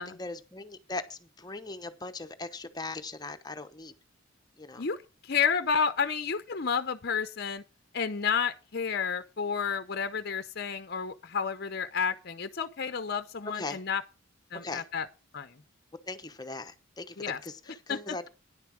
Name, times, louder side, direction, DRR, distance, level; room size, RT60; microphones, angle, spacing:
voice 1, 0.0-3.9 4.6-4.9 13.5-13.8 14.6-14.8 16.1-17.2 17.4-18.3, left 3 dB, 20° left, 0.9 m, -39 dB
voice 2, 5.2-7.6 7.9-14.0 14.5-15.1 15.3-15.6 17.2-17.4 17.9-18.2, left 6 dB, 50° left, 0.7 m, -31 dB
10.5 x 6.9 x 6.1 m
head